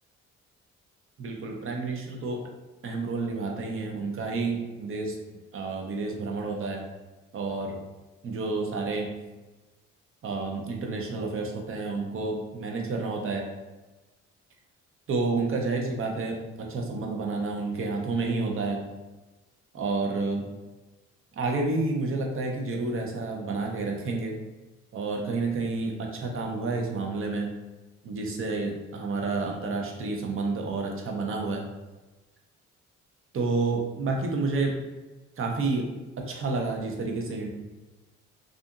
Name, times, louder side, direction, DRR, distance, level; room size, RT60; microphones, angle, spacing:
voice 1, 1.2-2.4 2.8-5.2 5.5-6.8 7.3-7.8 8.2-9.1 10.2-13.4 15.1-18.9 19.7-20.4 21.3-24.4 24.9-27.5 28.0-31.7 33.3-34.9 35.4-35.9 36.3-37.5, right 3 dB, 45° right, 1 dB, 0.6 m, -30 dB
2.7 x 2.5 x 2.3 m, 1.1 s
cardioid pair, 90°, 30 cm